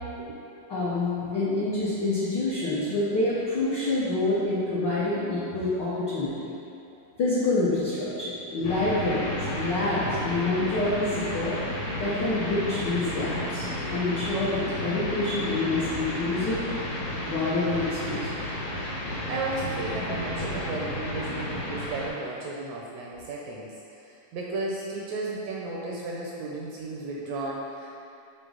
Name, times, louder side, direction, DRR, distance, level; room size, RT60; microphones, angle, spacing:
voice 1, 0.7-6.5 7.2-16.7 17.2-18.3, left 2 dB, 90° left, -10 dB, 0.9 m, -27 dB
sound 1, 8.6-22.1, left 1 dB, 70° left, 2.7 m, -32 dB
voice 2, 9.4-9.8 10.1-10.2 12.0-12.1 19.1-23.7 24.1-27.9, right 2 dB, 80° right, -3 dB, 1.6 m, -34 dB
6.6 x 4.0 x 3.8 m, 2.7 s
omnidirectional pair, 3.4 m